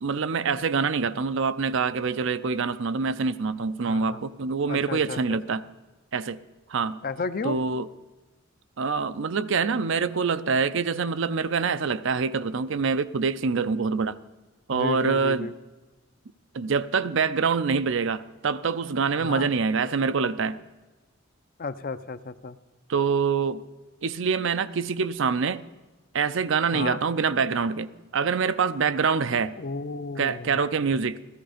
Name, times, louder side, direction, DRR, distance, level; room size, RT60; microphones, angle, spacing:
voice 1, 0.0-5.6 6.1-6.4 6.7-7.0 7.4-7.9 8.8-14.2 14.7-15.5 16.5-20.6 22.9-23.6 24.0-25.6 26.1-29.6 30.2-31.2, right 5 dB, 65° right, 0.5 m, -25 dB
voice 2, 3.8-4.2 4.7-5.4 7.0-7.6 14.7-15.5 19.2-19.5 21.6-22.6 26.7-27.0 29.6-30.6, left 4 dB, 45° left, 0.6 m, -33 dB
15.5 x 14.0 x 5.0 m
head